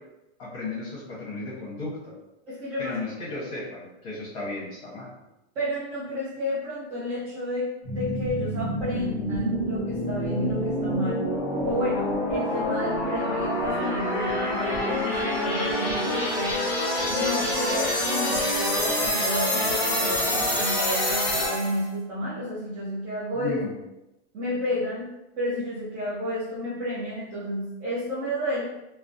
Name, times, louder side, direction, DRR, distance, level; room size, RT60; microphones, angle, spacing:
voice 1, 0.4-2.1 2.8-5.1 23.3-23.8, left 3 dB, 40° left, -6 dB, 0.8 m, -34 dB
voice 2, 2.5-3.0 5.5-11.2 11.6-16.6 17.1-23.6 24.3-28.7, equal, 30° right, -8 dB, 0.6 m, -31 dB
sound 1, 7.8-21.8, left 1 dB, 5° left, 0.8 m, -26 dB
2.4 x 2.1 x 2.6 m, 0.95 s
supercardioid pair, 150°, 33 cm